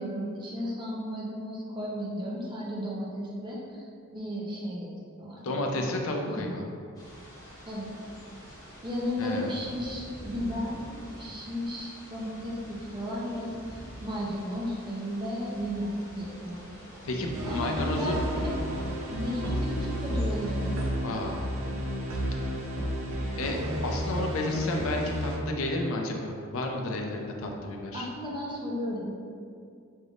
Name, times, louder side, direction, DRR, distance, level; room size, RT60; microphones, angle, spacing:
voice 1, 0.0-4.9 5.2-5.8 6.2-6.5 7.7-7.9 8.8-18.5 19.1-20.7 27.9-29.1, equal, 20° right, -5 dB, 0.7 m, -34 dB
voice 2, 5.4-6.6 9.2-9.5 17.0-18.2 21.0-21.4 23.3-28.1, left 1 dB, 70° left, 1 dB, 0.5 m, -31 dB
sound 1, 6.9-20.9, equal, 15° left, 1.0 m, -47 dB
sound 2, 17.3-25.4, equal, 70° right, 0.6 m, -31 dB
5.2 x 3.4 x 2.4 m, 2.3 s
head